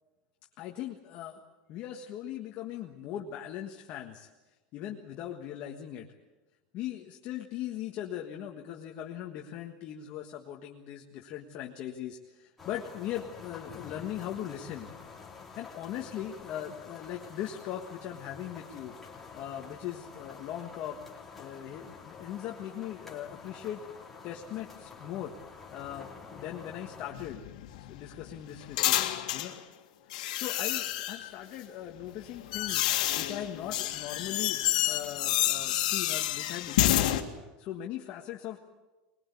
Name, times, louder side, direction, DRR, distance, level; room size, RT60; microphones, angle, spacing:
voice 1, 0.6-1.4 1.7-4.3 4.7-6.1 6.7-14.9 15.5-21.0 21.4-23.8 24.2-25.3 25.7-27.4 27.9-29.0 29.3-29.6 30.1-37.1 37.6-38.6, left 11 dB, 40° left, 1 dB, 1.6 m, -39 dB
sound 1, 12.6-27.1, left 5 dB, 5° left, 3.2 m, -48 dB
sound 2, 27.1-29.5 30.1-31.3 32.0-37.2, left 14 dB, 85° left, 2.0 m, -29 dB
21.5 x 21.5 x 8.4 m, 1.1 s
supercardioid pair, 160°, 4 cm